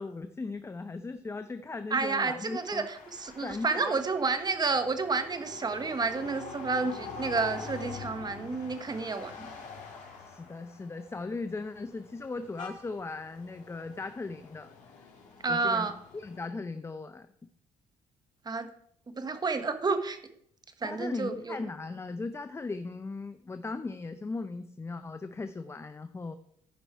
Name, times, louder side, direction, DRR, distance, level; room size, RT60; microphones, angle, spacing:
voice 1, 0.0-2.9 3.4-4.0 10.2-14.7 14.9-15.0 15.5-17.3 20.8-26.4, left 3 dB, 20° left, 10 dB, 0.6 m, -38 dB
voice 2, 1.9-9.5 15.4-15.9 18.4-18.7 19.2-20.2 20.8-21.6, right 4 dB, 30° right, 9 dB, 1.3 m, -30 dB
sound 1, 2.4-16.5, left 5 dB, 65° left, 2.9 m, -46 dB
14.5 x 5.4 x 4.6 m, 0.69 s
cardioid pair, 85°, 13 cm